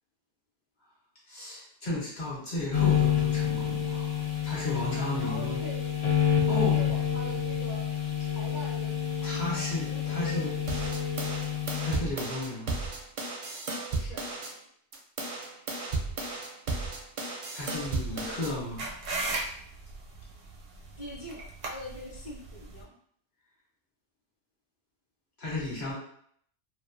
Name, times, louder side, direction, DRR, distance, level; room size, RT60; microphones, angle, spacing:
voice 1, 1.3-5.6 6.5-6.8 9.2-10.5 11.8-12.8 17.5-18.9 25.4-25.9, left 2 dB, 45° left, -6 dB, 0.8 m, -34 dB
sound 1, 2.7-12.0, left 9 dB, 70° left, 0.3 m, -28 dB
voice 2, 4.9-5.9 6.6-7.9 8.3-10.6 10.9-11.2 13.9-14.2 18.1-18.3 21.0-22.9, equal, 25° left, -5 dB, 0.6 m, -43 dB
sound 2, 10.7-14.5 14.9-18.5, right 3 dB, 55° right, 0.5 m, -34 dB
sound 3, 17.7-22.8, right 2 dB, 85° right, 0.9 m, -38 dB
2.3 x 2.3 x 2.5 m, 0.64 s
omnidirectional pair, 1.3 m